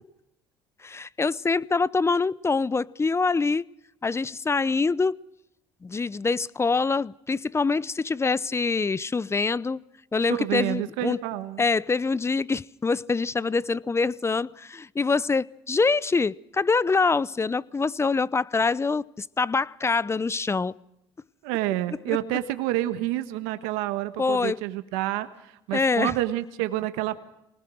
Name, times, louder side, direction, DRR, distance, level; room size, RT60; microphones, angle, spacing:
voice 1, 0.8-3.7 4.0-5.2 5.8-9.8 10.1-11.2 11.6-20.7 22.1-22.2 24.2-24.6 25.7-26.1, left 4 dB, 25° left, 0.7 m, -25 dB
voice 2, 10.3-11.7 21.4-27.3, right 15 dB, 90° right, 1.4 m, -28 dB
24.5 x 20.0 x 6.3 m
supercardioid pair, 75°, 11 cm